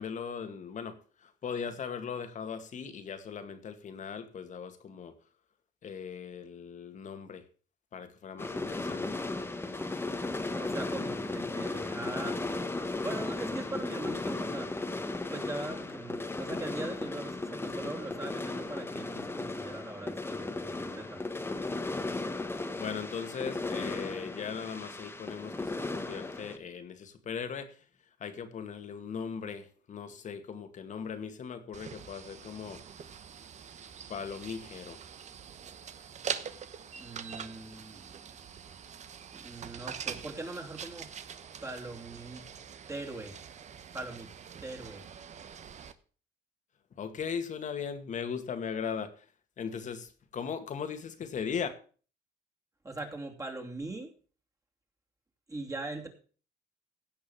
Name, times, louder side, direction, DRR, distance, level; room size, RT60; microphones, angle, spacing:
voice 1, 0.0-5.1 5.8-7.4 7.9-9.2 22.8-27.8 28.2-32.8 34.1-35.0 47.0-49.3 49.6-51.7, left 6 dB, 45° left, 9 dB, 2.1 m, -38 dB
sound 1, 8.4-26.6, left 2 dB, 15° left, 1.5 m, -36 dB
voice 2, 10.5-12.4 12.7-14.8 15.3-21.2 37.0-38.3 39.3-41.1 41.6-42.5 42.9-43.4 43.9-44.3 44.6-45.0 52.8-54.1 55.5-56.1, right 2 dB, 20° right, 1 dB, 2.9 m, -41 dB
sound 2, 31.7-45.9, right 7 dB, 45° right, 1.2 m, -44 dB
16.5 x 5.6 x 7.0 m, 0.40 s
cardioid pair, 110°, 17 cm